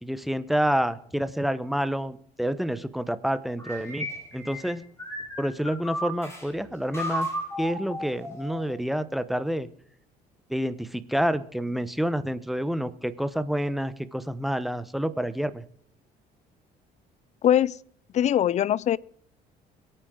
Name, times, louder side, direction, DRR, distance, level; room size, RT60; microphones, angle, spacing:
voice 1, 0.0-4.9 5.4-7.3 7.6-9.7 10.5-15.6, equal, ahead, 1.0 m, -28 dB
sound 1, 3.6-6.5 6.9-8.7, equal, 15° left, 6.4 m, -34 dB
voice 2, 17.4-17.8 18.1-19.0, left 10 dB, 45° left, 0.4 m, -21 dB
23.0 x 9.1 x 3.8 m
cardioid pair, 110°, 17 cm